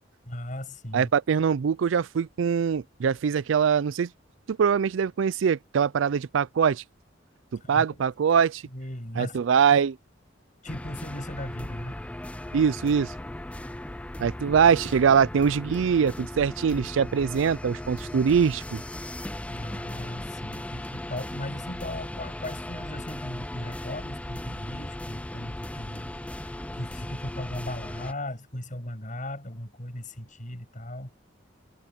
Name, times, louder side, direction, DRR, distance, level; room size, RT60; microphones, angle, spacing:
voice 1, 0.2-1.1 7.6-8.0 8.6-9.4 10.6-12.0 19.5-26.1 26.4-31.1, left 1 dB, 45° left, 6.6 m, -37 dB
voice 2, 0.9-4.1 4.5-6.8 7.7-8.6 9.2-10.0 12.5-13.1 14.2-18.8, right 7 dB, 85° right, 0.4 m, -23 dB
sound 1, 10.7-28.1, left 1 dB, 5° left, 0.5 m, -37 dB
head